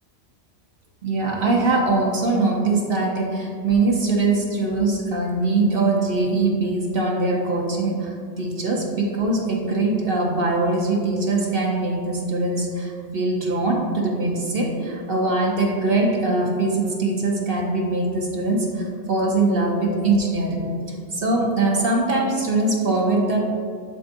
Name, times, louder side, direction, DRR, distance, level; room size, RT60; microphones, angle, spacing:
voice 1, 1.0-20.6 21.1-23.4, right 2 dB, 55° right, -1 dB, 1.0 m, -22 dB
11.0 x 4.1 x 2.6 m, 2.3 s
omnidirectional pair, 1.2 m